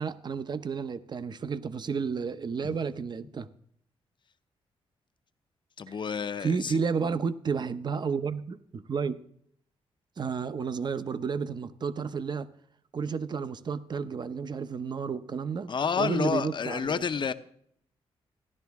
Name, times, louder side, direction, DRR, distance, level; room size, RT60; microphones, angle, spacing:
voice 1, 0.0-3.5 5.9-6.0 6.4-9.2 10.2-12.5 12.9-15.7 16.0-17.0, right 5 dB, 45° right, 13 dB, 0.6 m, -31 dB
voice 2, 5.8-6.8 15.7-17.3, left 6 dB, 50° left, 12 dB, 0.7 m, -29 dB
14.5 x 10.5 x 3.5 m, 0.69 s
cardioid pair, 80°, 11 cm